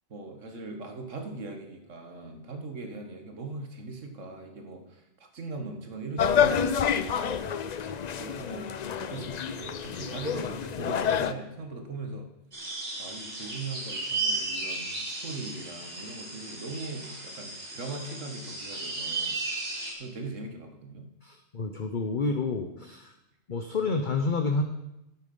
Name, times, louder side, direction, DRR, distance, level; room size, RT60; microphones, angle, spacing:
voice 1, 0.1-7.8 8.2-12.3 13.0-19.4 20.0-21.1, right 3 dB, 65° right, 5 dB, 1.8 m, -40 dB
sound 1, 6.2-11.3, left 7 dB, 65° left, 0.4 m, -28 dB
sound 2, 12.5-19.9, right 3 dB, 45° right, 2.9 m, -35 dB
voice 2, 21.2-23.1 23.5-24.6, left 3 dB, 45° left, 5 dB, 0.9 m, -29 dB
12.0 x 8.9 x 5.4 m, 0.89 s
omnidirectional pair, 1.4 m